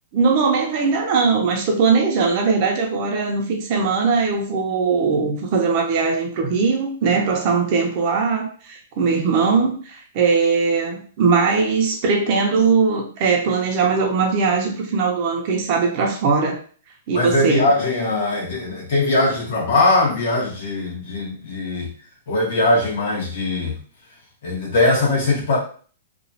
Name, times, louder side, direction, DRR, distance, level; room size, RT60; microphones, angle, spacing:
voice 1, 0.1-16.6 17.1-17.7, right 4 dB, 40° right, 2 dB, 0.6 m, -20 dB
voice 2, 17.1-21.9 22.3-23.8 24.4-25.6, left 2 dB, 55° left, -3 dB, 1.4 m, -20 dB
3.0 x 2.4 x 2.7 m, 0.42 s
hypercardioid pair, 160°, 0 cm